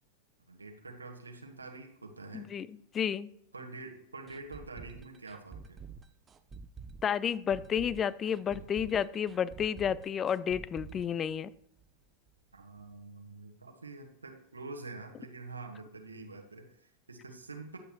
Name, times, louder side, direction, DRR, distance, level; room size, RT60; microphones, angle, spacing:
voice 1, 0.5-2.5 3.5-5.8 12.5-17.8, right 3 dB, 80° right, 3 dB, 1.4 m, -46 dB
voice 2, 2.3-2.7 2.9-3.3 7.0-11.5, left 8 dB, 25° left, 19 dB, 0.4 m, -31 dB
sound 1, 4.3-12.0 12.3-12.4 12.8-12.9, right 5 dB, 20° right, 0.6 m, -49 dB
11.5 x 8.3 x 3.0 m, 0.73 s
figure-of-eight pair, 90°, 0 cm